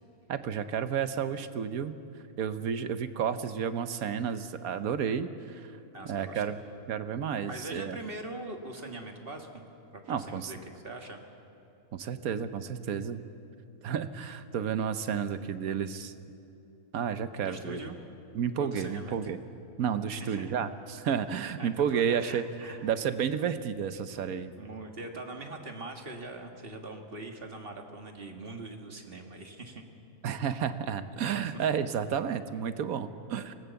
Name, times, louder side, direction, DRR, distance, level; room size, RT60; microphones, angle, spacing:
voice 1, 0.3-2.0 2.4-5.7 6.1-6.6 6.9-8.0 10.1-10.5 11.9-13.2 13.8-16.1 16.9-17.8 18.3-19.4 19.8-22.4 22.8-24.5 30.2-33.5, right 7 dB, 80° right, 11 dB, 1.3 m, -31 dB
voice 2, 5.9-6.4 7.5-9.7 9.9-10.6 10.8-11.2 17.4-18.0 18.6-19.3 20.1-20.6 21.6-22.9 24.6-29.8 31.4-31.6, right 2 dB, 40° right, 4 dB, 1.9 m, -42 dB
24.0 x 18.0 x 7.0 m, 2.7 s
omnidirectional pair, 1.5 m